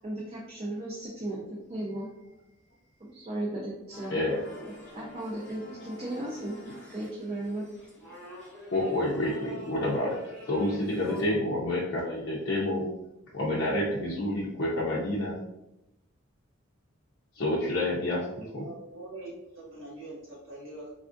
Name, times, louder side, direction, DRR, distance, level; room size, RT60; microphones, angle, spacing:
voice 1, 0.0-2.1 3.0-4.2 4.6-7.7, right 1 dB, 30° right, -4 dB, 0.4 m, -36 dB
sound 1, 3.9-11.4, equal, 5° left, 0.9 m, -47 dB
voice 2, 4.1-4.5 8.7-10.2 10.5-12.8 13.3-15.4 17.4-18.6, left 1 dB, 55° left, -6 dB, 0.5 m, -28 dB
voice 3, 18.3-20.9, right 2 dB, 70° right, -7 dB, 1.4 m, -43 dB
3.4 x 2.3 x 2.5 m, 0.90 s
head